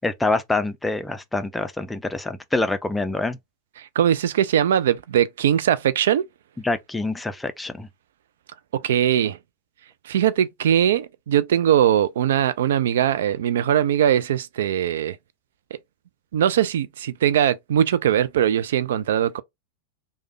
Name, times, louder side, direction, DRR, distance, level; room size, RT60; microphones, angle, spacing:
voice 1, 0.0-3.4 6.6-7.9, left 2 dB, 10° left, 0.4 m, -25 dB
voice 2, 3.8-6.3 8.7-9.4 10.0-15.2 15.7-15.8 16.3-19.4, right 10 dB, 60° right, 0.3 m, -21 dB
3.2 x 2.2 x 3.0 m
figure-of-eight pair, 90°, 0 cm